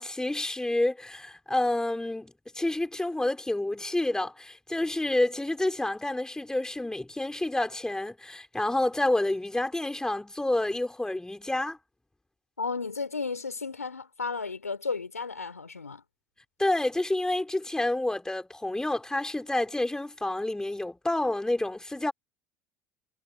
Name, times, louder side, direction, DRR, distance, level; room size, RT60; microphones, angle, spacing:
voice 1, 0.0-11.8 16.6-22.1, left 1 dB, 10° left, 4.3 m, -29 dB
voice 2, 12.6-16.0, left 4 dB, 90° left, 5.3 m, -33 dB
figure-of-eight pair, 65°, 8 cm